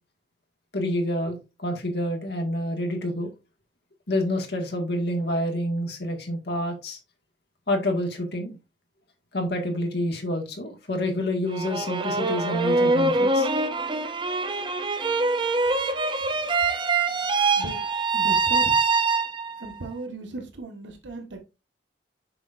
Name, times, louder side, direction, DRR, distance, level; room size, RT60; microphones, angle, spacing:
voice 1, 0.7-3.3 4.1-7.0 7.7-8.6 9.3-13.5, left 1 dB, 65° left, 1.9 m, -28 dB
sound 1, 11.5-19.7, right 3 dB, 25° right, 0.6 m, -24 dB
voice 2, 18.1-18.8 19.6-21.4, right 2 dB, 90° right, 1.4 m, -36 dB
6.8 x 6.2 x 2.6 m
head